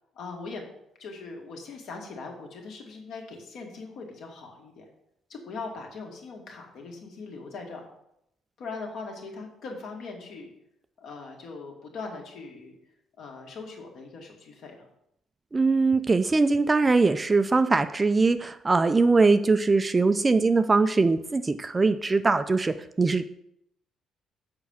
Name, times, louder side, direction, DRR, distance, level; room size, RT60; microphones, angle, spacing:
voice 1, 0.2-0.7 1.0-4.8 5.3-7.9 8.6-10.5 11.0-12.8 13.2-14.8, left 4 dB, 60° left, 1 dB, 2.0 m, -40 dB
voice 2, 15.5-23.2, right 3 dB, 15° right, 10 dB, 0.3 m, -22 dB
7.1 x 5.2 x 7.2 m, 0.77 s
cardioid pair, 155°, 0 cm